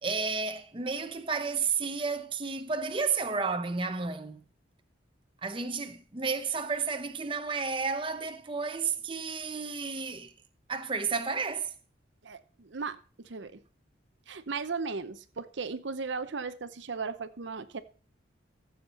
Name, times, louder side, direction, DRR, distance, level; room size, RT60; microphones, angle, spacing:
voice 1, 0.0-4.5 5.4-10.3 10.7-11.7, right 5 dB, 25° right, 0.8 m, -32 dB
voice 2, 12.2-13.6 14.3-17.8, right 4 dB, 70° right, 0.7 m, -36 dB
14.0 x 7.4 x 4.2 m
head